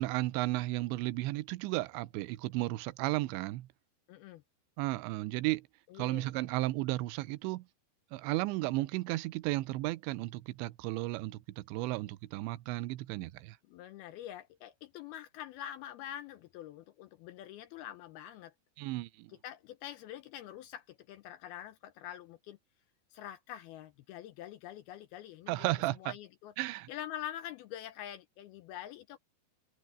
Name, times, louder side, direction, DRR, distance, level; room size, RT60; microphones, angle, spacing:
voice 1, 0.0-3.7 4.8-5.7 6.0-7.6 8.1-13.6 18.8-19.3 25.5-26.1 26.6-26.9, right 19 dB, 90° right, 3.0 m, -34 dB
voice 2, 4.1-4.4 5.9-6.3 13.7-18.5 19.4-22.6 23.1-25.7 26.0-26.5 26.9-29.2, left 11 dB, 80° left, 2.3 m, -45 dB
omnidirectional pair, 5.1 m